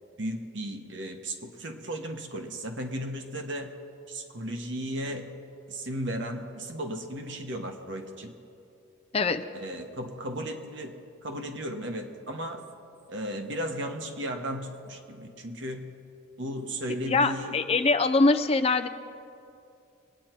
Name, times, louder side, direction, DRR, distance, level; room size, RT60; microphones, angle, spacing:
voice 1, 0.2-3.7 4.1-5.3 5.7-8.3 9.5-10.9 11.2-12.6 13.1-15.9 16.4-17.6, equal, 60° right, 5 dB, 1.2 m, -35 dB
voice 2, 17.1-18.9, left 3 dB, 30° left, 10 dB, 0.4 m, -23 dB
22.5 x 9.4 x 4.5 m, 2.6 s
head